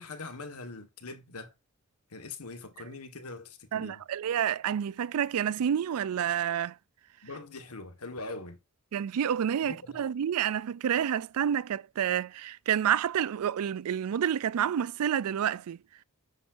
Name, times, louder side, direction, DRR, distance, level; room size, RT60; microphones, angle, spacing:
voice 1, 0.0-1.5 2.1-4.0 7.2-8.6 9.6-10.0, left 3 dB, 85° left, 1.6 m, -42 dB
voice 2, 3.7-6.8 8.9-15.8, right 9 dB, 75° right, 0.4 m, -29 dB
9.9 x 7.2 x 2.6 m
head